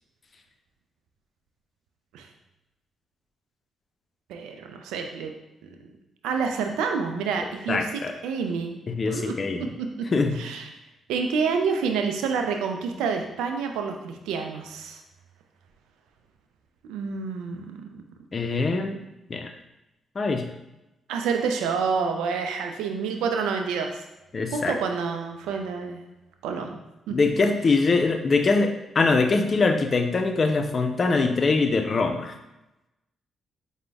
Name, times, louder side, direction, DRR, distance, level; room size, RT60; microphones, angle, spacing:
voice 1, 4.3-5.3 5.6-5.8 6.2-7.9 8.2-8.8 9.1-9.3 10.4-10.7 11.1-15.0 16.9-18.0 21.1-24.0 24.5-26.0 26.4-26.8 27.1-27.2, right 5 dB, 85° right, 4 dB, 0.4 m, -28 dB
voice 2, 7.7-8.1 8.9-9.7 10.1-10.4 18.3-19.0 19.3-19.5 20.2-20.5 24.3-24.8 27.1-32.4, left 3 dB, 45° left, 6 dB, 0.5 m, -23 dB
5.0 x 2.1 x 3.4 m, 0.94 s
supercardioid pair, 50°, 0 cm